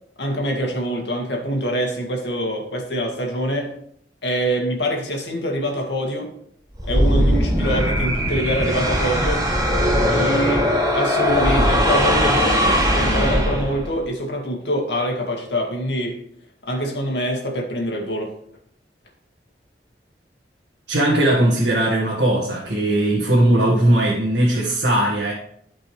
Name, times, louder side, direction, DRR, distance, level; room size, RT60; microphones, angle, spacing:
voice 1, 0.2-3.7 4.2-6.3 6.9-9.4 10.1-10.7 10.9-16.2 16.6-18.3, equal, 70° left, 1 dB, 2.0 m, -24 dB
sound 1, 6.7-14.0, equal, 20° right, 3.2 m, -19 dB
voice 2, 20.9-25.3, right 1 dB, 70° right, -5 dB, 1.9 m, -18 dB
12.5 x 5.3 x 3.4 m, 0.67 s
head